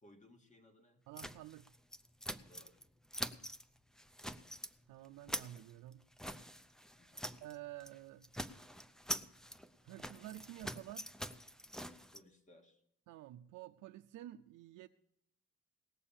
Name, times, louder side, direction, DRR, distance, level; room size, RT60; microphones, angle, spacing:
voice 1, 0.0-1.1 2.4-2.8 6.9-7.3 12.1-12.8, left 1 dB, 25° left, 5 dB, 2.0 m, -63 dB
voice 2, 1.1-1.7 4.9-6.0 7.4-8.3 9.8-11.1 13.1-14.9, right 14 dB, 85° right, 7 dB, 0.5 m, -50 dB
sound 1, 1.2-2.8 3.1-3.6 4.0-4.7 5.0-7.5 7.8-8.0 8.2-12.2, equal, ahead, 0.6 m, -45 dB
18.5 x 6.9 x 7.2 m, 0.79 s
cardioid pair, 90°, 30 cm